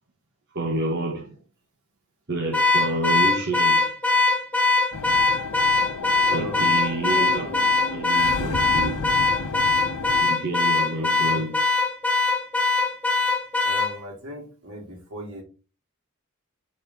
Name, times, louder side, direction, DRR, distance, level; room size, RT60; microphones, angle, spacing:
voice 1, 0.5-1.4 2.3-3.9 6.3-7.6 7.9-9.0 10.2-11.6, right 2 dB, 50° right, 1.2 m, -29 dB
Car / Alarm, 2.5-13.9, left 3 dB, 5° left, 1.0 m, -21 dB
sound 1, 4.9-10.2, left 4 dB, 80° left, 0.7 m, -33 dB
voice 2, 6.3-7.7 11.0-11.4 13.6-15.4, equal, 75° right, 2.8 m, -38 dB
5.8 x 4.6 x 4.1 m
head